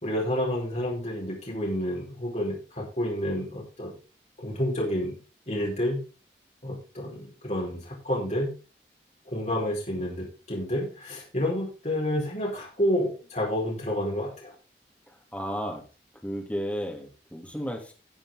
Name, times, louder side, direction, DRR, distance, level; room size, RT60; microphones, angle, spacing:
voice 1, 0.0-3.9 4.4-5.2 5.5-6.0 6.6-8.5 9.3-14.5, equal, 40° left, -3 dB, 4.8 m, -29 dB
voice 2, 15.1-15.8 16.2-17.9, equal, 10° left, 0 dB, 2.6 m, -33 dB
14.5 x 7.6 x 3.8 m, 0.33 s
head